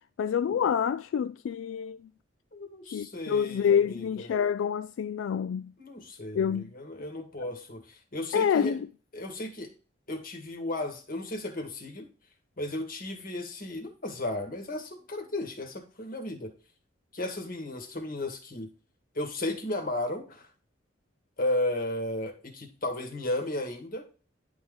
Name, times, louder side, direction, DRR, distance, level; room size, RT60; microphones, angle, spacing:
voice 1, 0.2-2.0 2.9-5.7 6.3-6.7 8.3-8.9, left 8 dB, 85° left, 0.3 m, -27 dB
voice 2, 2.5-4.3 5.8-8.8 9.1-9.7 10.1-12.1 12.6-16.5 17.1-18.7 19.1-20.5 21.4-24.1, left 1 dB, 50° left, 1.7 m, -34 dB
10.5 x 3.7 x 3.8 m
head